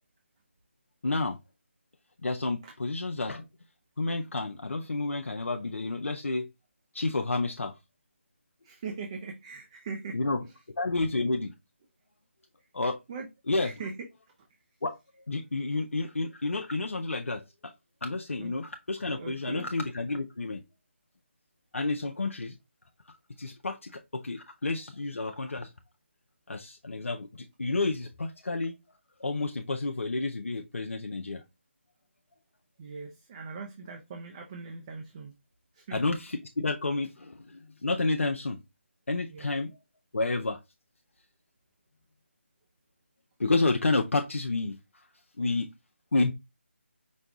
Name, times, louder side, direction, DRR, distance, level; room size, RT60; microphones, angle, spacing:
voice 1, 1.0-1.4 2.2-3.4 4.0-6.5 6.9-7.7 10.1-10.4 10.8-11.5 12.7-13.0 13.5-13.7 14.8-15.0 15.3-17.4 18.0-20.6 21.7-22.5 23.4-25.7 26.5-27.3 27.6-28.7 29.2-31.4 35.9-38.6 39.1-39.7 40.1-40.6 43.4-44.8 45.4-45.7 46.1-46.3, left 3 dB, 75° left, 0.6 m, -30 dB
voice 2, 8.6-10.2 10.5-10.6 11.0-11.1 13.1-13.3 13.6-14.1 18.4-18.5 19.2-19.7 32.8-35.3 35.7-36.1 39.3-39.6, right 4 dB, 25° right, 0.6 m, -41 dB
5.2 x 2.3 x 3.7 m
figure-of-eight pair, 155°, 7 cm